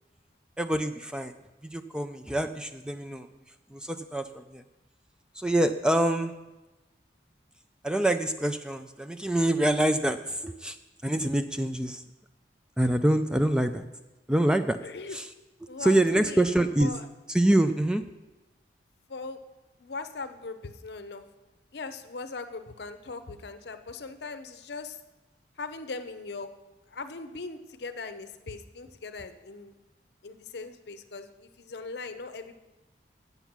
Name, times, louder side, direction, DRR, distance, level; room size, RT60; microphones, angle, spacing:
voice 1, 0.6-1.4 1.6-3.3 3.7-4.6 5.3-6.3 7.8-10.8 11.0-12.0 12.8-13.8 14.3-14.8 15.1-15.3 15.8-16.9 17.3-18.0, right 1 dB, 5° right, 8 dB, 0.3 m, -25 dB
voice 2, 14.8-15.2 15.7-16.5 16.8-17.0 19.1-19.4 19.8-21.2 21.7-25.0 25.6-26.5 26.9-29.7 30.2-32.5, left 3 dB, 70° left, 9 dB, 0.7 m, -39 dB
8.8 x 8.0 x 6.0 m, 1.1 s
head